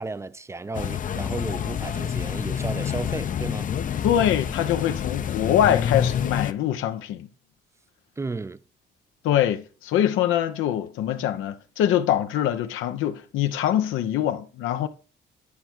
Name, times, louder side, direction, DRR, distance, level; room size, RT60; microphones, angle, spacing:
voice 1, 0.0-3.7 8.2-8.6, right 3 dB, 15° right, 0.4 m, -33 dB
sound 1, 0.7-6.5, left 8 dB, 40° left, 0.5 m, -28 dB
voice 2, 4.0-7.3 9.2-14.9, left 11 dB, 90° left, 0.7 m, -24 dB
10.0 x 4.6 x 4.4 m
cardioid pair, 90°, 20 cm